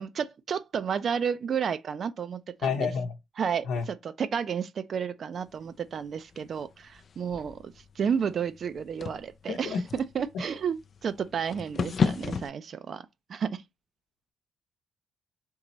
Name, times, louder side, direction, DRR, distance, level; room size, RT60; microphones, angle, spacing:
voice 1, 0.0-2.9 3.4-13.6, right 7 dB, 55° right, 0.6 m, -32 dB
voice 2, 2.6-3.1 3.7-3.8 9.5-9.8, left 6 dB, 85° left, 0.8 m, -29 dB
sound 1, 5.4-12.5, left 5 dB, 50° left, 0.4 m, -35 dB
3.8 x 2.9 x 4.1 m
cardioid pair, 90°, 0 cm